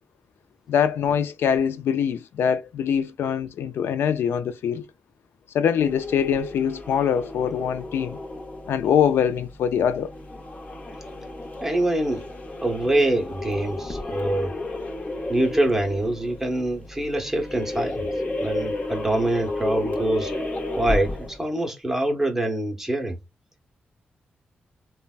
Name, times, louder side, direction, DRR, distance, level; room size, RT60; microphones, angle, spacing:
voice 1, 0.7-4.9 5.5-8.2 8.7-10.1, left 8 dB, 85° left, 0.3 m, -23 dB
sound 1, 5.8-21.5, left 2 dB, 40° left, 0.8 m, -33 dB
voice 2, 11.4-12.3 12.6-14.5 15.3-18.1 18.4-20.3 20.8-23.2, right 1 dB, 10° right, 0.8 m, -25 dB
3.2 x 2.1 x 2.3 m
cardioid pair, 70°, 4 cm